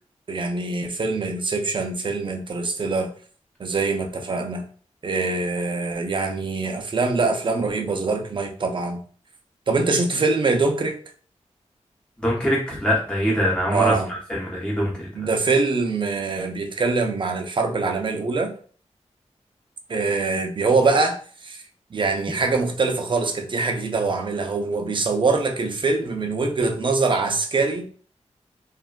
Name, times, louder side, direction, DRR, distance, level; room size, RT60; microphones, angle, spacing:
voice 1, 0.3-3.1 3.6-4.6 5.0-9.0 9.7-10.9 13.7-14.1 15.1-18.5 19.9-21.6 21.9-27.9, right 3 dB, 45° right, 0.4 m, -23 dB
voice 2, 12.2-13.9 14.3-14.9 15.2-15.3, equal, 10° left, 0.7 m, -23 dB
3.1 x 2.2 x 2.3 m
wide cardioid pair, 105°, 12 cm